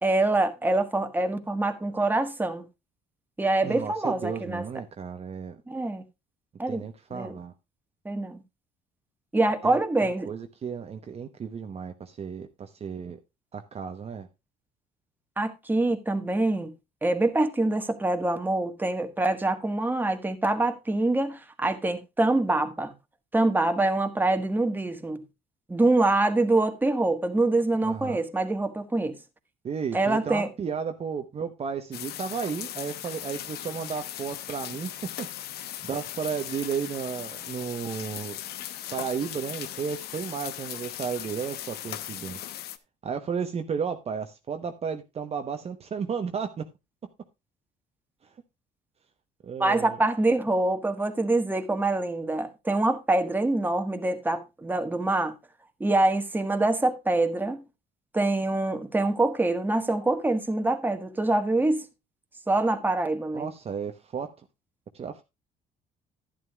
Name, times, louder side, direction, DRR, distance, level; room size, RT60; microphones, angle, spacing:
voice 1, 0.0-2.6 3.4-4.6 5.7-6.0 6.6-6.8 7.1-7.3 8.0-8.4 9.3-10.3 15.4-16.7 17.0-22.9 23.3-25.2 25.7-29.2 29.9-30.5 49.6-55.4 55.8-57.6 58.1-61.9 62.5-63.5, right 2 dB, 10° right, 1.3 m, -25 dB
voice 2, 3.6-5.6 6.7-7.5 9.6-13.2 13.5-14.3 27.8-28.2 29.6-35.3 35.5-38.4 38.9-42.5 43.0-46.7 49.4-50.0 63.3-64.4 64.9-65.2, right 6 dB, 35° right, 0.9 m, -33 dB
sound 1, 31.9-42.8, left 12 dB, 70° left, 0.9 m, -38 dB
11.5 x 11.0 x 2.3 m
cardioid pair, 110°, 17 cm